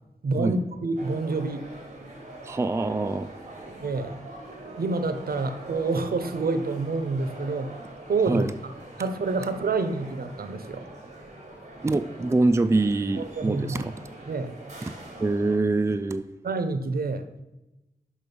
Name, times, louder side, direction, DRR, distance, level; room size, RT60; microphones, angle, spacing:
voice 1, 0.2-1.7 3.8-4.2 4.8-7.7 8.1-8.4 9.0-10.9 13.2-13.8 14.3-14.6 16.4-17.4, right 3 dB, 75° right, 10 dB, 0.7 m, -28 dB
sound 1, 1.0-15.6, right 2 dB, 50° right, 2.2 m, -43 dB
voice 2, 2.4-3.3 8.3-8.5 11.8-13.9 14.8-14.9 15.2-16.3, right 2 dB, 20° right, 11 dB, 0.3 m, -24 dB
6.3 x 5.7 x 5.3 m, 0.96 s
wide cardioid pair, 80°, 16 cm